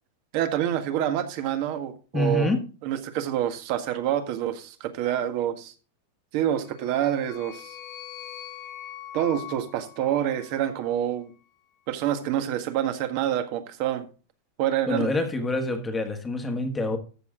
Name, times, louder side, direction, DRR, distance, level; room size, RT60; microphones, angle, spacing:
voice 1, 0.3-2.5 2.8-5.7 6.3-7.8 9.1-11.3 11.9-14.1 14.6-15.1, right 11 dB, 50° right, 1.6 m, -27 dB
voice 2, 2.1-2.6 14.9-17.0, left 2 dB, 10° left, 1.5 m, -26 dB
sound 1, 6.6-11.0, left 11 dB, 40° left, 1.2 m, -43 dB
14.0 x 6.6 x 3.7 m
supercardioid pair, 155°, 0 cm